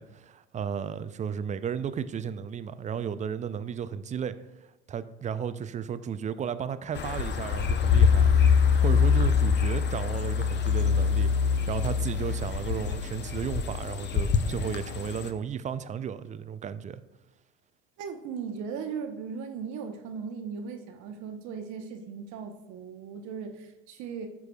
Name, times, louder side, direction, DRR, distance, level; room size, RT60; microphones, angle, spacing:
voice 1, 0.0-4.4 4.9-8.3 8.8-17.0, right 7 dB, 25° right, 13 dB, 0.4 m, -34 dB
sound 1, 6.9-15.3, left 6 dB, 35° left, 0.7 m, -24 dB
voice 2, 18.0-24.3, right 6 dB, 60° right, 6 dB, 0.9 m, -38 dB
12.5 x 4.7 x 2.3 m, 1.0 s
hypercardioid pair, 75°, 32 cm